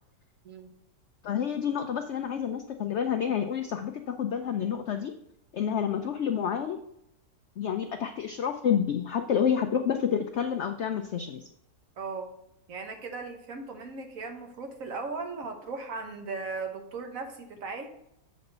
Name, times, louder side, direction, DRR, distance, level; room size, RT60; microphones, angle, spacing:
voice 1, 1.2-5.1 5.5-6.8 7.6-11.5, left 8 dB, 80° left, 6 dB, 0.6 m, -29 dB
voice 2, 12.0-12.3 12.7-17.9, right 4 dB, 55° right, 5 dB, 1.3 m, -37 dB
7.7 x 4.2 x 5.3 m, 0.79 s
omnidirectional pair, 1.8 m